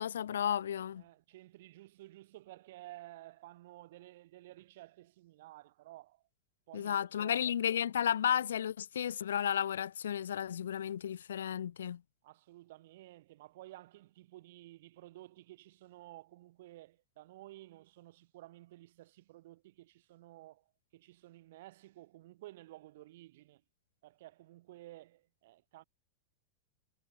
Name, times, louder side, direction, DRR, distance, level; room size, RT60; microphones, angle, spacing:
voice 1, 0.0-1.0 6.7-12.0, left 9 dB, 65° left, 0.6 m, -33 dB
voice 2, 1.0-6.2 6.7-7.4 12.2-20.6 20.9-23.6 24.0-25.8, right 16 dB, 55° right, 5.7 m, -53 dB
figure-of-eight pair, 90°, 0 cm